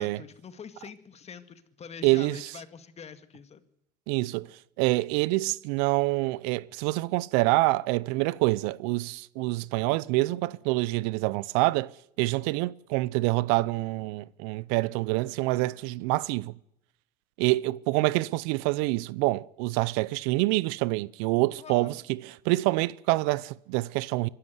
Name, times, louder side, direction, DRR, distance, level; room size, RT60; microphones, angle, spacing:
voice 1, 0.0-3.7 21.6-22.0, left 6 dB, 30° left, 2.2 m, -45 dB
voice 2, 2.0-2.5 4.1-4.5 4.8-11.9 12.2-16.5 17.4-24.3, right 21 dB, 70° right, 0.8 m, -26 dB
24.0 x 12.5 x 9.4 m
supercardioid pair, 95°, 21 cm